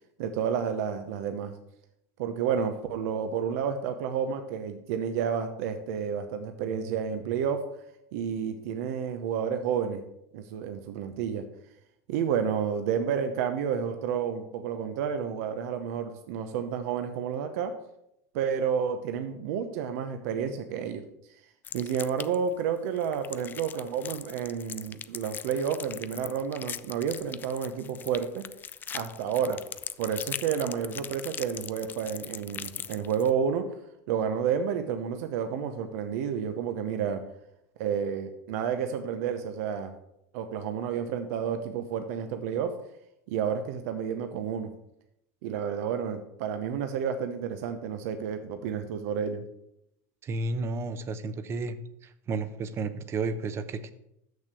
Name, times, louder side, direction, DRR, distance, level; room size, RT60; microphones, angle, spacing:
voice 1, 0.2-1.5 2.2-7.6 8.1-10.0 10.3-11.4 12.1-17.7 18.3-21.0 21.7-28.4 28.9-29.6 30.0-33.7 34.1-37.2 37.8-39.9 40.3-42.7 43.3-44.7 45.4-49.4, right 7 dB, 70° right, 7 dB, 0.8 m, -30 dB
sound 1, 21.6-22.5 23.0-33.3, left 8 dB, 25° left, 0.3 m, -40 dB
voice 2, 50.2-51.8 52.0-53.9, right 3 dB, 30° right, 12 dB, 0.8 m, -32 dB
6.7 x 6.5 x 6.8 m, 0.80 s
supercardioid pair, 125°, 8 cm